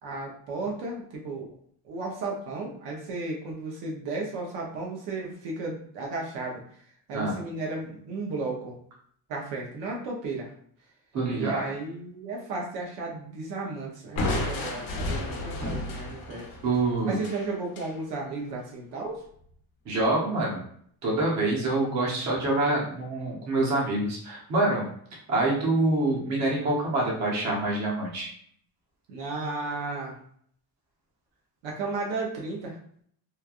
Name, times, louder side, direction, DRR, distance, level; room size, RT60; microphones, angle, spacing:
voice 1, 0.0-1.5 1.8-6.6 7.1-8.8 9.3-10.5 11.3-16.5 17.0-19.2 29.1-30.1 31.6-32.8, right 3 dB, 75° right, -2 dB, 0.8 m, -34 dB
voice 2, 11.1-11.7 16.6-17.2 19.8-20.6 21.0-24.9 25.3-28.3, right 2 dB, 40° right, -3 dB, 0.9 m, -26 dB
Crushing, 14.2-17.9, left 2 dB, 65° left, 0.9 m, -32 dB
3.2 x 2.2 x 2.4 m, 0.62 s
cardioid pair, 170°, 42 cm